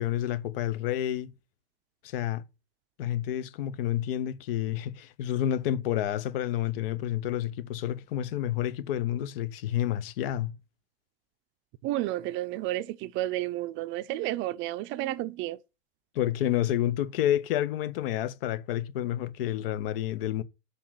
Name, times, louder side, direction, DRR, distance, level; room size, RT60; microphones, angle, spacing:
voice 1, 0.0-1.3 2.0-2.4 3.0-10.5 16.1-20.4, left 12 dB, 55° left, 0.9 m, -29 dB
voice 2, 11.8-15.6, right 15 dB, 35° right, 0.6 m, -31 dB
6.4 x 5.8 x 6.2 m
hypercardioid pair, 100°, 33 cm